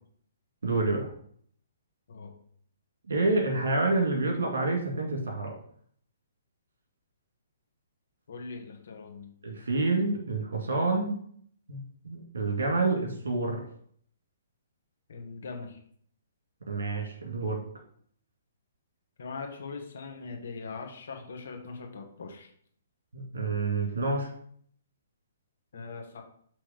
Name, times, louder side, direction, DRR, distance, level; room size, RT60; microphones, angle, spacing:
voice 1, 0.6-1.1 3.1-5.5 9.4-11.2 11.7-13.6 16.7-17.6 23.1-24.3, right 3 dB, 75° right, 1 dB, 2.1 m, -28 dB
voice 2, 2.1-2.4 8.3-9.3 15.1-15.8 19.2-22.5 25.7-26.2, left 4 dB, 70° left, 2 dB, 1.5 m, -41 dB
6.2 x 3.0 x 5.0 m, 0.62 s
hypercardioid pair, 135°, 0 cm